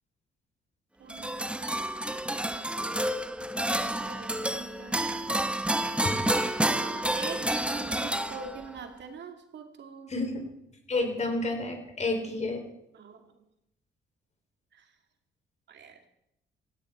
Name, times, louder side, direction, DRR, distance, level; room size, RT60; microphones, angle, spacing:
voice 1, 1.0-1.9 3.4-5.3 5.9-6.1 6.5-10.1 12.9-13.2 14.7-14.9 15.7-16.0, right 5 dB, 60° right, 5 dB, 2.4 m, -44 dB
sound 1, 1.1-8.8, right 1 dB, 5° right, 0.9 m, -29 dB
voice 2, 10.1-10.4 10.9-12.6, left 2 dB, 35° left, 5 dB, 3.8 m, -30 dB
17.0 x 16.0 x 4.5 m, 0.81 s
cardioid pair, 90°, 20 cm